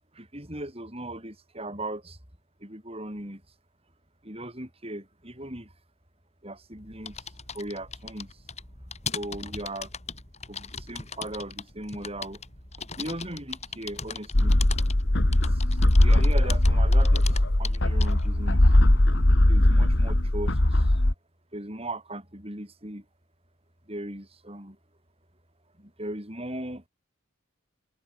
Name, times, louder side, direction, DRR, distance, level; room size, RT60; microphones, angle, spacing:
voice 1, 0.1-2.2 2.6-3.4 4.2-5.7 6.4-8.3 9.1-9.9 10.5-12.4 12.9-14.6 15.3-15.6 16.0-18.7 19.5-20.9 21.5-23.0 23.9-24.8 25.8-26.8, right 1 dB, 30° right, 8.0 m, -38 dB
sound 1, 6.7-18.3, left 6 dB, 30° left, 5.7 m, -40 dB
sound 2, 14.3-21.1, left 1 dB, 60° left, 1.9 m, -20 dB
head